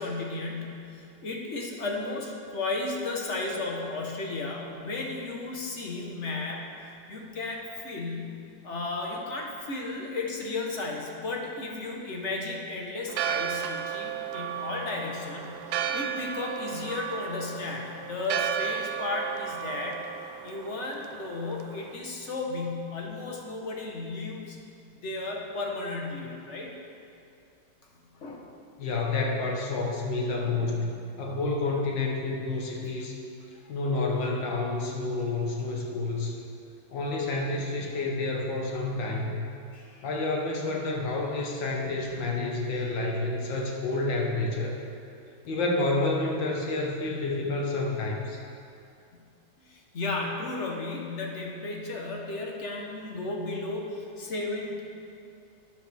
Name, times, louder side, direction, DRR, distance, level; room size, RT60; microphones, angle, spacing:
voice 1, 0.0-6.7 7.1-8.4 8.6-20.0 20.4-24.6 25.0-26.7 28.1-28.4 30.4-30.7 33.6-33.7 39.7-40.0 41.8-42.0 49.6-54.8, left 3 dB, 45° left, 0 dB, 1.3 m, -34 dB
Church bell, 13.1-22.0, right 9 dB, 90° right, 1.3 m, -34 dB
voice 2, 28.8-30.9 31.2-33.2 33.7-36.4 36.9-39.4 40.0-44.8 45.5-48.4, left 2 dB, 80° left, -1 dB, 2.0 m, -29 dB
12.0 x 9.3 x 3.4 m, 2.5 s
omnidirectional pair, 2.0 m